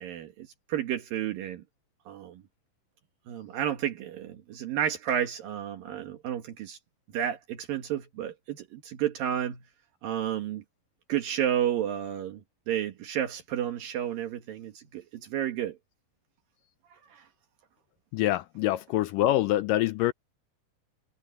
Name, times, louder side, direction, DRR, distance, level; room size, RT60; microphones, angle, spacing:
voice 1, 0.0-1.6 2.1-2.4 3.3-6.8 7.1-9.6 10.0-10.6 11.1-12.4 12.7-15.8 16.9-17.3, right 10 dB, 75° right, 3.2 m, -31 dB
voice 2, 18.1-20.1, left 14 dB, 80° left, 2.1 m, -25 dB
omnidirectional pair, 4.1 m